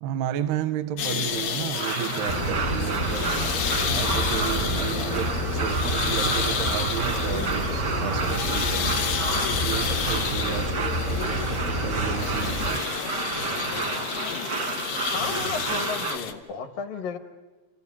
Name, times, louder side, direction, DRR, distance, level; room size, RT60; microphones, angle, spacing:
voice 1, 0.0-3.3 3.9-9.0 9.6-12.8, right 10 dB, 85° right, 11 dB, 2.9 m, -32 dB
sound 1, 1.0-16.3, left 8 dB, 90° left, 3.4 m, -31 dB
sound 2, 1.7-16.2, right 5 dB, 60° right, 1.1 m, -31 dB
sound 3, 2.3-12.8, equal, 50° left, 0.8 m, -29 dB
voice 2, 15.1-17.2, left 6 dB, 65° left, 7 dB, 2.9 m, -33 dB
29.5 x 15.0 x 9.8 m, 1.3 s
omnidirectional pair, 4.5 m